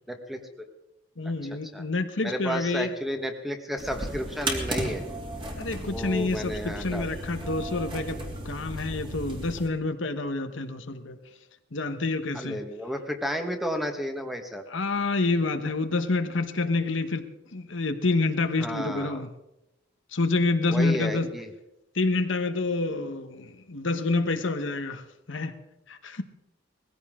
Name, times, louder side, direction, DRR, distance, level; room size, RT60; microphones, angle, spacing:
voice 1, 0.1-0.4 1.7-1.8 2.2-5.1 5.8-7.1 12.3-14.6 18.6-19.2 20.7-21.5, equal, ahead, 5 dB, 1.4 m, -32 dB
voice 2, 1.2-2.9 5.6-11.2 11.7-12.6 14.7-17.3 17.5-19.3 20.1-21.3 21.9-25.0 25.3-25.6 25.9-26.2, left 3 dB, 65° left, 8 dB, 1.1 m, -28 dB
sound 1, 3.8-9.7, right 1 dB, 25° right, 2.6 m, -35 dB
20.5 x 15.5 x 3.7 m, 0.90 s
head